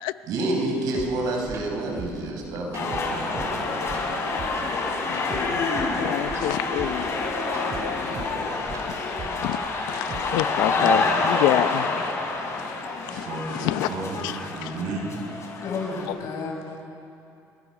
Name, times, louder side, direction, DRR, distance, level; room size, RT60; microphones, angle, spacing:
voice 1, 0.3-4.2 10.7-11.3 13.1-15.2, right 2 dB, 70° right, 1 dB, 5.4 m, -30 dB
sound 1, 0.9-1.1 1.4-1.6 2.0-3.6 3.8-6.0 6.2-8.4 8.6-10.5, right 5 dB, 45° right, 4.8 m, -38 dB
sound 2, 2.7-16.1, left 3 dB, 45° left, 5.6 m, -27 dB
voice 2, 5.1-5.6 6.0-7.1 9.4-9.6 9.9-12.1 13.0-14.0 14.2-14.8, left 15 dB, 90° left, 13 dB, 0.8 m, -28 dB
voice 3, 15.6-16.9, left 4 dB, 60° left, 0 dB, 6.7 m, -32 dB
30.0 x 22.5 x 6.2 m, 2.7 s
cardioid pair, 110°, 7 cm